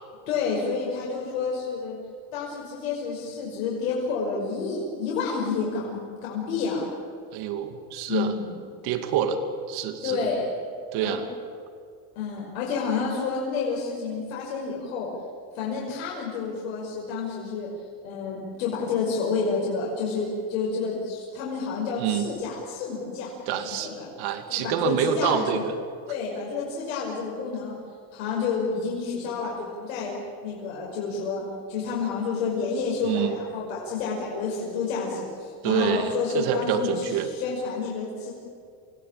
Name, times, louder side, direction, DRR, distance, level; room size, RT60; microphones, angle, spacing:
voice 1, 0.3-2.0 2.3-6.9 8.1-8.5 10.0-10.5 11.0-11.2 12.2-15.1 15.5-17.7 18.0-23.3 23.6-24.1 24.5-25.7 26.1-27.7 28.1-31.4 31.7-38.3, left 5 dB, 80° left, -3 dB, 5.9 m, -29 dB
voice 2, 7.3-8.3 8.8-9.4 9.7-10.2 10.9-11.2 22.0-22.3 23.5-25.7 33.0-33.4 35.6-37.3, right 9 dB, 65° right, 8 dB, 2.7 m, -27 dB
28.0 x 17.5 x 8.7 m, 2.3 s
supercardioid pair, 105°, 40 cm